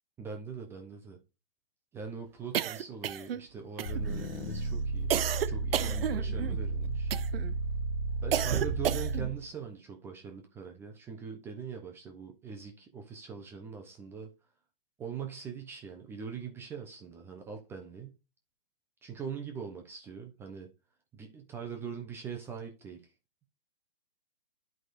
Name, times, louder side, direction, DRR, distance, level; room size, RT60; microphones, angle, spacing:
voice 1, 0.2-1.2 1.9-5.1 5.5-7.1 8.2-14.3 15.0-18.2 19.0-20.7 21.1-23.0, right 6 dB, 10° right, 0.4 m, -42 dB
sound 1, 2.5-3.5 3.8-4.3 5.1-6.6 7.1-7.5 8.3-9.3, right 10 dB, 70° right, 0.6 m, -32 dB
sound 2, 3.9-9.5, right 3 dB, 60° left, 0.8 m, -33 dB
11.5 x 4.8 x 2.5 m
hypercardioid pair, 135°, 31 cm